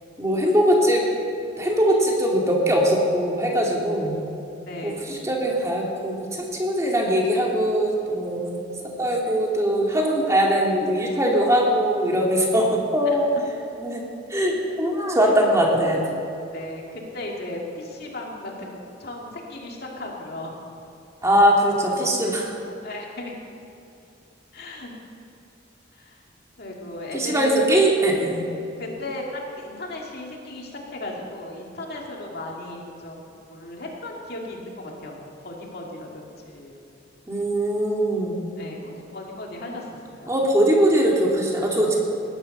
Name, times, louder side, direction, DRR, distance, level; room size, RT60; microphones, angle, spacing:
voice 1, 0.2-1.0 1.6-4.2 4.8-8.7 9.0-13.3 13.8-16.0 21.2-22.6 27.1-28.5 37.3-38.4 40.3-42.0, equal, 15° right, -2 dB, 2.3 m, -21 dB
voice 2, 4.7-5.2 13.1-13.2 15.2-15.3 16.5-20.6 22.8-23.3 24.5-24.9 25.9-26.2 26.6-27.5 28.8-36.7 38.6-40.3, left 1 dB, 60° left, -1 dB, 2.4 m, -36 dB
19.0 x 11.0 x 5.4 m, 2.7 s
head